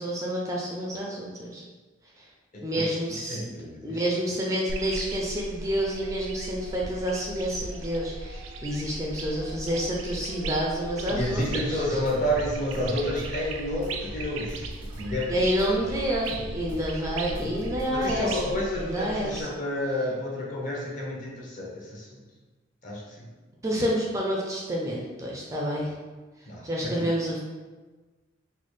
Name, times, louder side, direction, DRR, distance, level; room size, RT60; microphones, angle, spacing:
voice 1, 0.0-1.6 2.2-2.3 2.6-3.4 3.8-12.0 15.3-19.5 23.6-25.9 26.6-27.4, equal, 15° right, -2 dB, 0.4 m, -29 dB
voice 2, 3.1-4.0 11.1-15.7 17.3-17.5 17.9-22.2 22.8-23.3 26.5-27.1, left 1 dB, 40° left, -3 dB, 0.8 m, -30 dB
sound 1, 4.7-19.4, right 2 dB, 85° right, 0.4 m, -37 dB
sound 2, 11.4-11.6 12.1-13.4 13.8-15.2 15.6-16.9 17.3-18.5, equal, 65° left, 1.2 m, -42 dB
4.0 x 2.3 x 3.1 m, 1.3 s
head